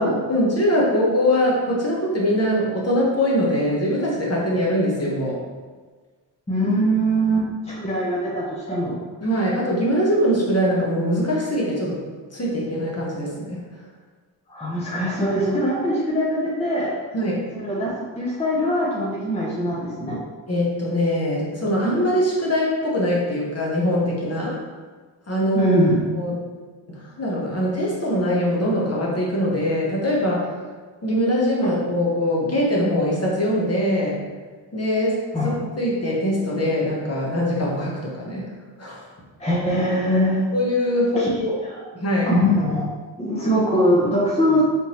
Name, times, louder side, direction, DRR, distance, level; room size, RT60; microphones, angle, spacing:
voice 1, 0.0-5.4 9.2-12.0 12.3-13.6 17.1-17.5 20.5-24.6 25.3-25.8 26.1-26.5 26.9-30.5 31.0-34.2 34.7-38.5 38.8-39.0 40.5-41.5 41.9-42.3, equal, 30° left, -4 dB, 1.2 m, -22 dB
voice 2, 6.5-9.0 14.5-17.0 17.5-20.2 25.5-26.0 31.6-31.7 35.3-35.6 39.4-40.4 41.2-41.3 42.3-44.6, equal, 15° left, -6 dB, 0.9 m, -22 dB
3.5 x 2.7 x 3.0 m, 1.4 s
supercardioid pair, 45°, 47 cm